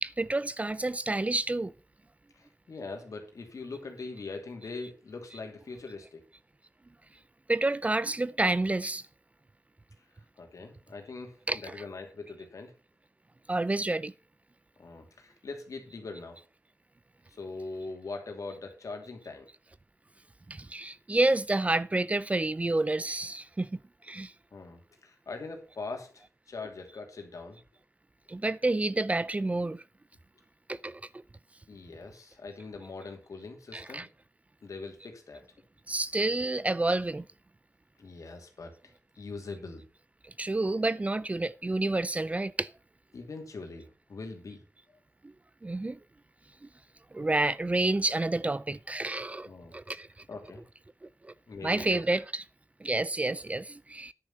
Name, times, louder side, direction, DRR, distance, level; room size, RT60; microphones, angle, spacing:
voice 1, 0.0-1.7 7.5-9.0 11.5-11.6 13.5-14.1 20.5-23.8 24.1-24.3 28.3-29.8 30.7-31.0 33.7-34.1 35.9-37.3 40.4-42.7 45.6-46.0 47.1-50.1 51.2-51.3 51.6-52.4 52.8-54.1, right 2 dB, 25° right, 0.4 m, -29 dB
voice 2, 2.3-6.2 10.4-12.7 14.8-16.4 17.3-19.5 24.5-27.6 31.7-34.1 34.6-35.4 38.0-39.8 43.1-44.6 49.4-49.8 50.3-50.6 51.5-52.0, left 3 dB, 75° left, 2.7 m, -42 dB
10.5 x 6.4 x 5.6 m
wide cardioid pair, 115°, 6 cm